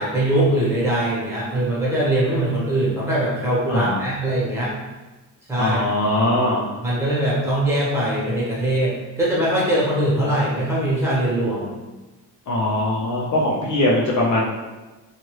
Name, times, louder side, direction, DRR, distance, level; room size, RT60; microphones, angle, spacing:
voice 1, 0.0-4.7 5.5-5.9 6.8-11.7, right 1 dB, 5° right, -8 dB, 1.3 m, -21 dB
voice 2, 3.7-4.0 5.6-6.7 12.5-14.4, left 1 dB, 50° left, -3 dB, 0.6 m, -21 dB
2.6 x 2.5 x 3.1 m, 1.2 s
cardioid pair, 90°, 38 cm